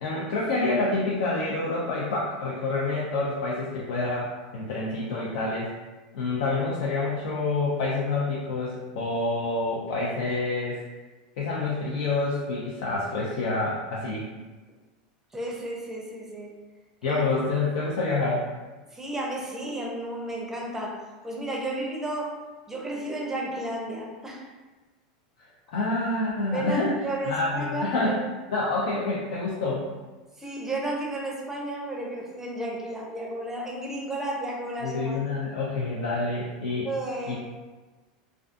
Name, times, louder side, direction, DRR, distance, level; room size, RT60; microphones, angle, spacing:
voice 1, 0.0-5.7 6.1-10.8 11.4-14.3 17.0-18.4 25.7-26.9 27.3-28.2 28.5-29.8 34.8-36.9 37.3-37.4, left 3 dB, 75° left, -6 dB, 0.5 m, -27 dB
voice 2, 15.3-16.5 17.0-17.2 18.9-22.4 22.7-24.5 26.5-28.1 30.4-35.2 36.8-37.4, right 1 dB, 10° right, -2 dB, 0.5 m, -33 dB
2.4 x 2.3 x 2.5 m, 1.2 s
supercardioid pair, 120°, 4 cm